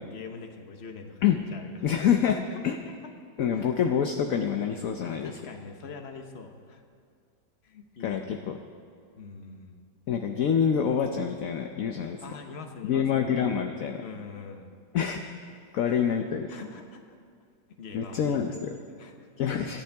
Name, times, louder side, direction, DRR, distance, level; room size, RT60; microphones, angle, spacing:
voice 1, 0.0-1.8 2.2-2.8 3.0-3.1 3.4-3.8 5.0-6.8 7.6-8.5 9.2-9.8 12.0-13.4 14.0-14.7 15.7-16.0 16.5-17.0 17.8-19.3, left 4 dB, 40° left, 5 dB, 1.2 m, -44 dB
voice 2, 1.8-2.4 2.6-2.8 3.4-5.3 8.0-8.6 10.1-12.2 12.9-14.0 14.9-16.5 17.9-18.8 19.4-19.8, left 8 dB, 60° left, 5 dB, 1.0 m, -26 dB
26.0 x 11.5 x 3.5 m, 2.2 s
omnidirectional pair, 1.9 m